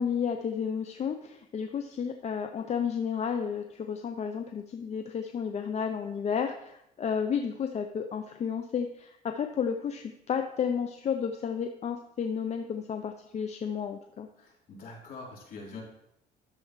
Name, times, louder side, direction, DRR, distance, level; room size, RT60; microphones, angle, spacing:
voice 1, 0.0-14.3, left 7 dB, 40° left, 6 dB, 0.6 m, -32 dB
voice 2, 14.4-15.8, left 3 dB, 60° left, -4 dB, 3.6 m, -44 dB
12.0 x 7.0 x 3.2 m, 0.81 s
cardioid pair, 110°, 17 cm